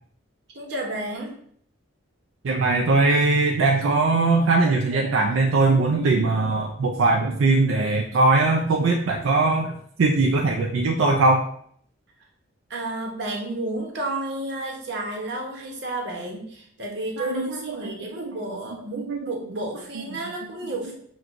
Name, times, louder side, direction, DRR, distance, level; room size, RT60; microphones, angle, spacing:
voice 1, 0.5-1.4 12.7-21.0, right 2 dB, 60° right, 0 dB, 0.9 m, -31 dB
voice 2, 2.4-9.7 10.0-11.4 17.2-17.8 18.2-18.4 19.0-19.3, right 3 dB, 85° right, 1 dB, 0.4 m, -20 dB
6.1 x 2.3 x 2.5 m, 0.63 s
head